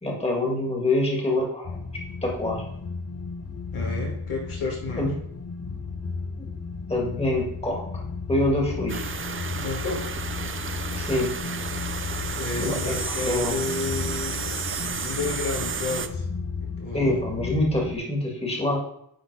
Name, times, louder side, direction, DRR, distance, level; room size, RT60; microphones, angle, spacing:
voice 1, 0.0-1.8 2.2-2.6 5.0-5.1 6.4-6.5 6.9-8.0 8.3-9.0 11.0-11.3 12.6-12.9 13.3-13.6 16.9-18.8, left 1 dB, 10° left, -1 dB, 1.8 m, -25 dB
sound 1, 1.6-18.0, left 4 dB, 30° left, 0.7 m, -34 dB
voice 2, 3.7-5.1 9.6-10.2 12.2-16.2 16.6-17.3, left 3 dB, 80° left, -2 dB, 2.0 m, -32 dB
sound 2, 8.9-16.1, right 5 dB, 30° right, 0.4 m, -32 dB
9.7 x 3.9 x 4.7 m, 0.73 s
wide cardioid pair, 130°, 49 cm